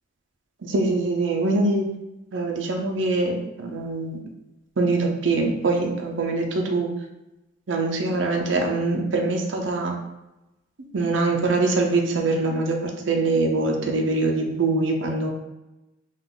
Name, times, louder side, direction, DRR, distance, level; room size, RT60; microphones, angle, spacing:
voice 1, 0.6-1.9 2.3-4.2 4.8-6.9 7.7-9.9 10.9-15.3, right 3 dB, 75° right, 1 dB, 0.6 m, -23 dB
3.9 x 2.4 x 3.8 m, 0.97 s
head